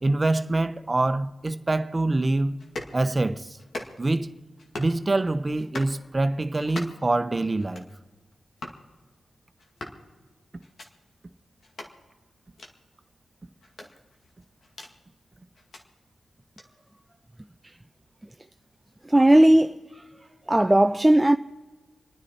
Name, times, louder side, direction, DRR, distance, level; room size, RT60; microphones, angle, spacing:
voice 1, 0.0-2.6 2.9-3.6 4.0-4.3 4.8-7.8, right 2 dB, 35° right, 1.0 m, -25 dB
sound 1, 2.6-3.0 3.6-4.2 4.6-5.0 5.6-6.0 6.6-7.1 7.6-7.9 8.6-8.8 9.6-10.0 10.6-10.9 11.6-11.9 12.6-12.7 13.6-14.9 15.5-15.8 16.6-16.7, left 2 dB, 70° left, 2.1 m, -40 dB
voice 2, 19.1-20.0 20.5-21.4, right 1 dB, 20° right, 0.4 m, -18 dB
28.0 x 9.8 x 4.4 m
supercardioid pair, 45°, 0 cm